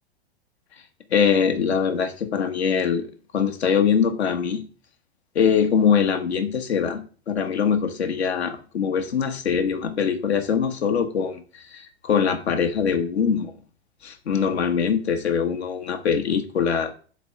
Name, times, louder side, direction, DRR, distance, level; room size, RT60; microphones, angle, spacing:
voice 1, 1.1-3.1 3.3-4.6 5.3-7.0 7.3-13.5 14.0-16.9, left 7 dB, 75° left, 1.1 m, -23 dB
7.3 x 3.3 x 4.6 m
hypercardioid pair, 100°, 32 cm